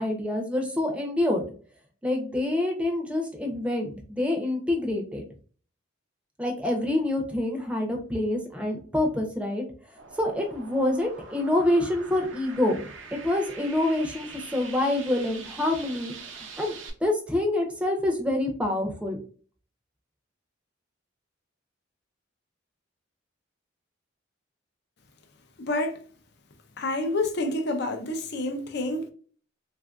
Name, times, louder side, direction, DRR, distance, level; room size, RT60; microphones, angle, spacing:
voice 1, 0.0-1.5 2.0-5.2 6.4-9.6 10.2-16.1 16.6-16.7 17.0-19.2, left 1 dB, 5° right, 0.6 m, -26 dB
sound 1, 10.0-16.9, right 5 dB, 70° right, 0.7 m, -44 dB
voice 2, 25.6-26.0 26.8-29.1, left 2 dB, 60° left, 0.5 m, -28 dB
3.4 x 2.5 x 2.3 m
head